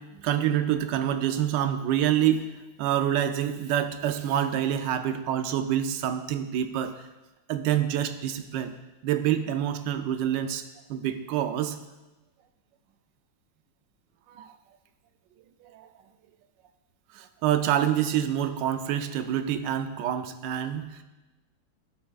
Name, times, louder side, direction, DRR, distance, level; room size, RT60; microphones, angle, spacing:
voice 1, 0.0-2.5 2.8-6.9 7.5-8.7 9.0-10.6 10.9-11.8 14.3-14.5 15.6-15.9 17.1-21.0, right 10 dB, 75° right, 8 dB, 1.2 m, -27 dB
12.5 x 5.9 x 2.4 m, 1.1 s
omnidirectional pair, 2.1 m